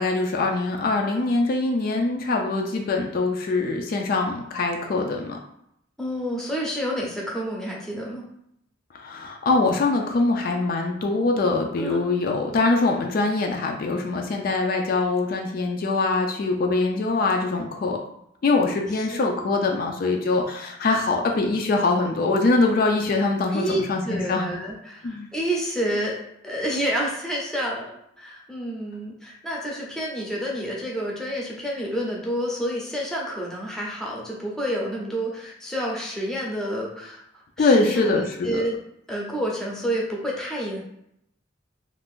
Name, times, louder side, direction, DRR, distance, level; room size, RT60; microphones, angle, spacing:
voice 1, 0.0-5.4 8.9-18.0 18.4-24.5 25.0-25.3 37.6-38.6, left 3 dB, 50° left, 2 dB, 0.4 m, -23 dB
voice 2, 6.0-8.2 11.8-12.2 19.1-19.2 23.5-26.2 26.4-37.2 37.6-38.1 38.4-38.8 39.1-40.8, equal, 5° left, -3 dB, 0.6 m, -29 dB
2.5 x 2.4 x 3.5 m, 0.77 s
head